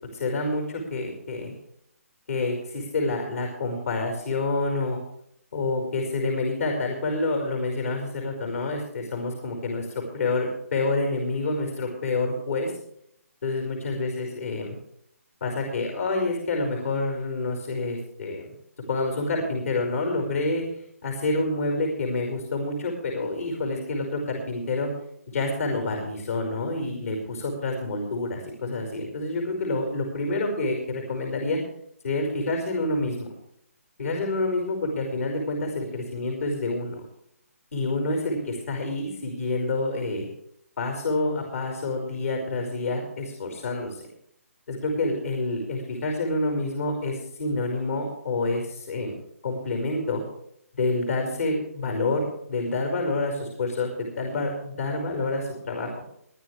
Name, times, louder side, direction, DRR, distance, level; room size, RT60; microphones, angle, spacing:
voice 1, 0.1-1.5 2.3-5.0 5.5-12.7 13.4-14.8 15.4-18.5 18.9-20.6 21.0-24.9 25.3-31.6 32.0-33.3 34.0-37.0 37.7-40.3 40.8-44.0 44.7-49.2 49.4-50.2 50.8-55.9, left 2 dB, 65° left, 2 dB, 5.5 m, -28 dB
24.0 x 10.5 x 3.4 m, 0.70 s
hypercardioid pair, 150°, 8 cm